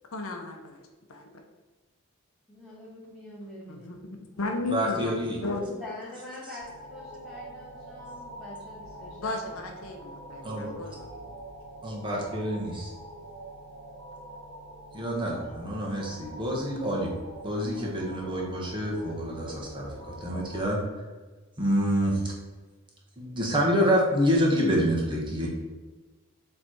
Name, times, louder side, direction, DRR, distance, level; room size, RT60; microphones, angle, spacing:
voice 1, 0.1-1.4 3.7-5.7 9.2-11.1, left 3 dB, 65° left, 3 dB, 0.7 m, -35 dB
voice 2, 2.5-3.9 5.4-9.6, left 1 dB, 5° right, -10 dB, 1.3 m, -44 dB
voice 3, 4.7-5.4 10.4-10.7 11.8-12.9 14.9-17.1 17.4-20.9 21.6-22.3 23.2-25.5, equal, 25° right, -3 dB, 1.4 m, -27 dB
sound 1, 6.6-20.6, right 1 dB, 80° right, 1.0 m, -45 dB
7.0 x 3.3 x 4.4 m, 1.3 s
head